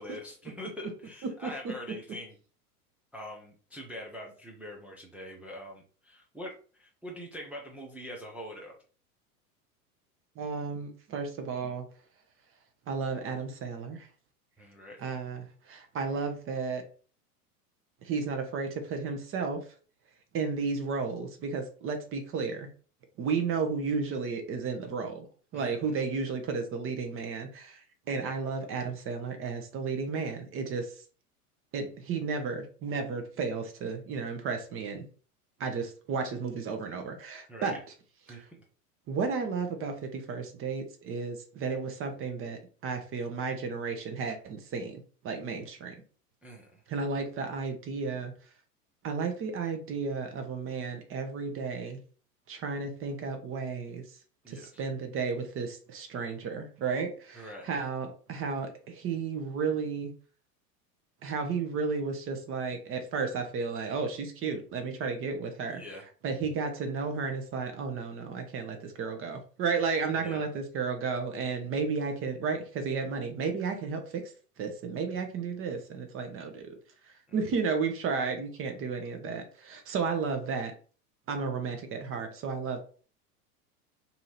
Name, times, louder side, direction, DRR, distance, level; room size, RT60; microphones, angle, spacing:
voice 1, 0.0-2.4 3.1-8.8 14.6-15.0 25.5-25.9 37.5-37.8 38.3-38.4 46.4-46.8 54.4-54.8 57.3-57.7 65.7-66.0 70.2-70.5, left 1 dB, 5° right, -2 dB, 0.3 m, -43 dB
voice 2, 10.4-11.9 12.9-14.1 15.0-16.8 18.0-19.7 20.3-22.7 23.2-25.3 25.5-27.8 28.1-30.9 31.7-35.0 35.6-37.8 38.3-38.4 39.1-45.9 46.9-48.3 49.0-52.0 52.5-54.0 54.5-60.1 61.2-65.8 66.2-74.3 74.6-76.8 77.0-80.7 81.3-82.8, right 5 dB, 30° right, 6 dB, 0.8 m, -33 dB
2.8 x 2.7 x 4.2 m, 0.40 s
figure-of-eight pair, 90°, 46 cm